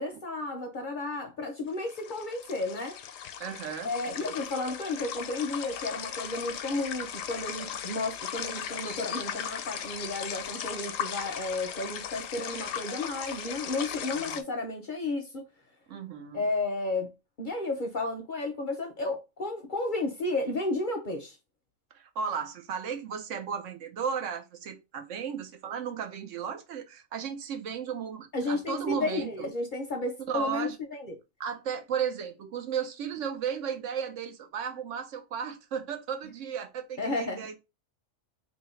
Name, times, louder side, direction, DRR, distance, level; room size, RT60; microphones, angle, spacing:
voice 1, 0.0-3.0 3.8-15.4 16.3-17.1 17.4-21.4 28.3-31.1 37.0-37.5, left 2 dB, 50° left, 0.7 m, -32 dB
sound 1, 1.7-14.4, left 9 dB, 80° left, 0.9 m, -37 dB
voice 2, 3.4-4.3 14.1-14.4 15.9-16.5 21.9-29.5 30.3-30.8 31.4-37.6, right 7 dB, 70° right, 1.0 m, -35 dB
2.8 x 2.7 x 4.2 m
omnidirectional pair, 1.4 m